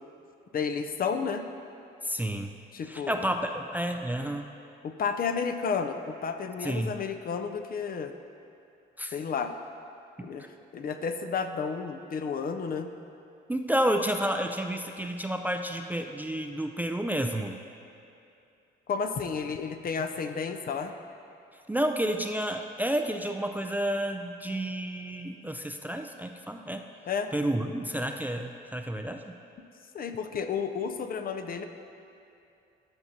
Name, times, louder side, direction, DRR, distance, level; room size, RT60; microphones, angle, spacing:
voice 1, 0.5-1.4 2.7-3.2 4.8-8.1 9.1-9.5 10.2-10.5 10.7-12.9 18.9-20.9 27.1-27.3 29.9-31.6, left 6 dB, 45° left, 8 dB, 0.5 m, -31 dB
voice 2, 2.0-2.5 2.8-4.5 6.6-6.9 9.0-9.1 10.2-10.5 13.5-17.6 21.7-26.8 27.3-29.4, right 1 dB, 10° right, 4 dB, 0.3 m, -30 dB
14.0 x 5.8 x 2.8 m, 2.6 s
cardioid pair, 90°, 20 cm